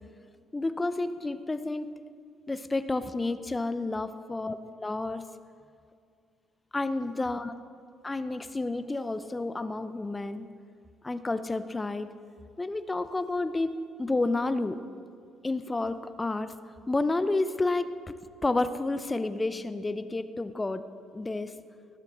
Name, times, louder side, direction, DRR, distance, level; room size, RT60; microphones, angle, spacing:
voice 1, 0.5-1.9 2.5-5.2 6.7-7.5 8.0-10.5 11.0-12.1 12.6-14.8 15.4-16.5 16.9-18.1 18.4-20.9 21.1-21.5, left 2 dB, 20° left, 13 dB, 0.6 m, -30 dB
20.0 x 12.0 x 3.9 m, 2.3 s
figure-of-eight pair, 50°, 0 cm